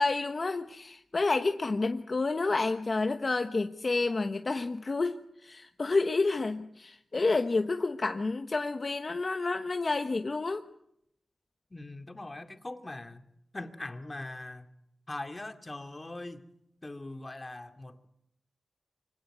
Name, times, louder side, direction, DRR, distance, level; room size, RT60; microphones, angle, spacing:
voice 1, 0.0-10.6, left 3 dB, 45° left, 1.2 m, -29 dB
voice 2, 11.7-13.2 13.5-14.7 15.1-16.5 16.8-18.1, left 2 dB, 30° left, 2.4 m, -41 dB
24.5 x 17.5 x 9.3 m
cardioid pair, 60°, 0 cm